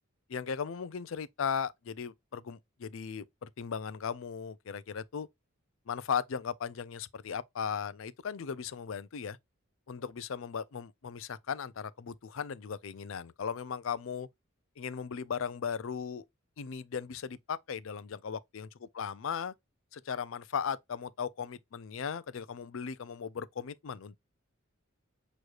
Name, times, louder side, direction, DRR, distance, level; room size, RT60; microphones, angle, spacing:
voice 1, 0.3-5.3 5.9-9.4 9.9-14.3 14.8-16.2 16.6-19.5 19.9-24.2, left 6 dB, 65° left, 0.4 m, -37 dB
6.3 x 3.1 x 2.4 m
head